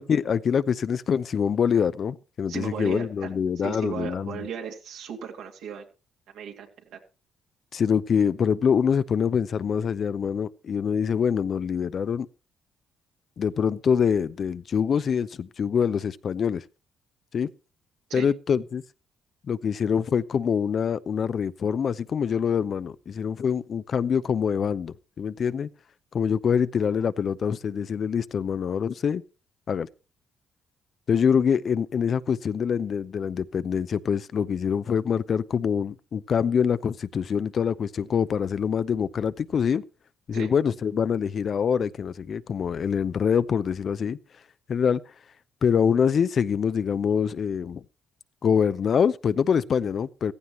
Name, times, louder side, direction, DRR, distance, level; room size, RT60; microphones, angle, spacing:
voice 1, 0.0-4.4 7.7-12.3 13.4-16.6 17.3-17.5 18.1-18.8 19.5-25.7 26.1-29.2 29.7-29.9 31.1-39.8 40.3-44.2 44.7-45.0 45.6-47.8 48.4-50.3, left 7 dB, 50° left, 0.6 m, -25 dB
voice 2, 2.5-5.9 6.3-7.0 18.1-18.3 40.3-40.5, right 7 dB, 80° right, 2.6 m, -36 dB
15.0 x 15.0 x 3.1 m
cardioid pair, 90°, 0 cm